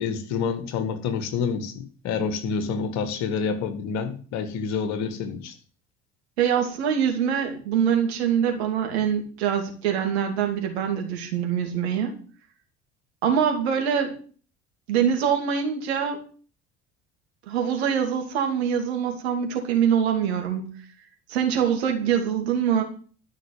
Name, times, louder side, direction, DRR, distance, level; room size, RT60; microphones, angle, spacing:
voice 1, 0.0-5.5, left 6 dB, 55° left, 1.9 m, -28 dB
voice 2, 6.4-12.1 13.2-14.2 14.9-16.2 17.5-20.8 21.3-22.8, right 8 dB, 70° right, 2.7 m, -24 dB
13.0 x 5.9 x 8.8 m
figure-of-eight pair, 60°, 33 cm